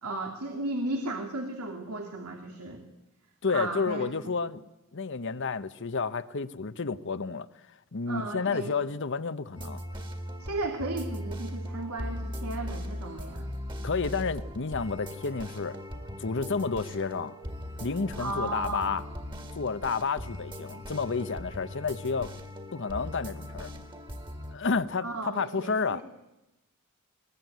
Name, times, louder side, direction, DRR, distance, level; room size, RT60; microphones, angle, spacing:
voice 1, 0.0-2.8 3.5-4.3 8.1-8.7 10.4-13.5 18.2-18.9 25.0-26.0, right 2 dB, 85° right, 3 dB, 2.7 m, -35 dB
voice 2, 3.4-4.6 4.9-7.5 7.9-9.8 13.8-15.8 16.2-17.3 17.8-19.0 19.6-22.3 22.7-23.7 24.5-26.0, left 4 dB, 55° left, 12 dB, 0.9 m, -30 dB
sound 1, 9.5-24.6, left 1 dB, 20° right, 2.2 m, -39 dB
22.0 x 21.5 x 9.3 m, 0.99 s
head